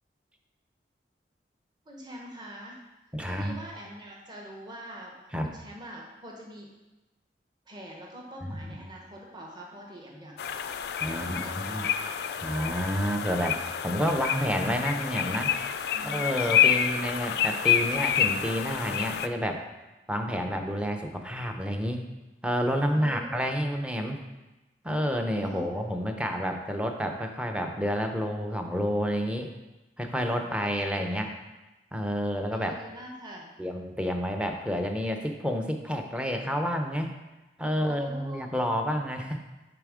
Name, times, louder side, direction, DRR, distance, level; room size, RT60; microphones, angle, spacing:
voice 1, 1.9-2.8 3.2-5.2 5.4-6.7 7.7-10.3 11.1-12.1 15.9-16.9 22.9-23.4 25.5-25.9 30.4-30.9 32.5-33.5 37.7-38.6, equal, 25° right, -2 dB, 1.1 m, -44 dB
voice 2, 3.1-3.6 5.3-5.5 8.6-8.7 11.0-11.9 12.4-13.6 13.8-15.5 16.0-19.6 20.1-22.0 22.4-24.2 24.8-29.5 30.0-31.3 31.9-32.7 33.6-37.2 37.6-39.4, equal, 5° right, 4 dB, 0.5 m, -29 dB
sound 1, 10.4-19.3, left 9 dB, 60° left, 0.3 m, -28 dB
6.8 x 4.3 x 4.9 m, 1.1 s
head